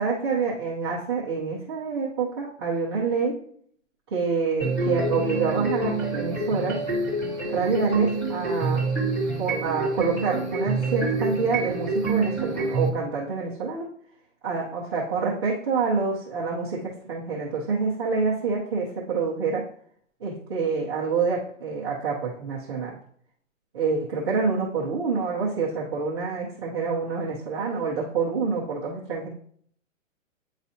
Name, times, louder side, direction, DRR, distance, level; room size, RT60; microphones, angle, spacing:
voice 1, 0.0-3.4 4.1-6.8 7.4-8.8 9.4-13.8 14.4-19.6 20.2-23.0 23.7-29.3, right 4 dB, 20° right, -7 dB, 0.7 m, -27 dB
sound 1, 4.6-12.9, right 3 dB, 5° left, 1.0 m, -27 dB
9.2 x 4.1 x 2.7 m, 0.63 s
hypercardioid pair, 165°, 40 cm